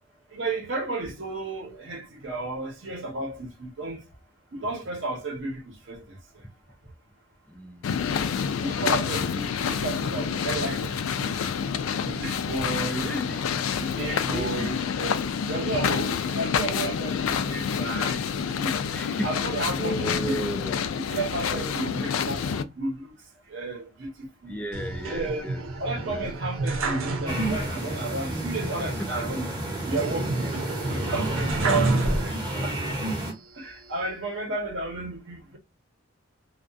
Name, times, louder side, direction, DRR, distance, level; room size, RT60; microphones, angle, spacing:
voice 1, 0.3-4.0 4.5-6.0 8.6-10.9 11.2-11.5 12.1-13.1 13.8-15.2 15.5-18.2 18.5-18.8 19.2-20.4 20.9-23.1 23.5-24.6 25.1-25.5 25.8-29.5 29.9-30.5 30.9-32.9 33.6-35.6, right 2 dB, 65° right, 0.8 m, -32 dB
voice 2, 7.5-8.1 12.9-13.4 14.3-14.7 18.9-19.3 19.8-20.8 21.5-21.7 24.5-25.6 26.1-26.4, equal, 5° left, 0.3 m, -34 dB
sound 1, 7.8-22.6, left 7 dB, 85° left, 0.3 m, -28 dB
sound 2, 24.7-27.8 28.1-28.2 30.0-32.7 33.2-34.1, right 2 dB, 85° right, 0.5 m, -30 dB
sound 3, 27.3-33.3, right 1 dB, 20° right, 0.7 m, -30 dB
2.3 x 2.3 x 2.5 m
head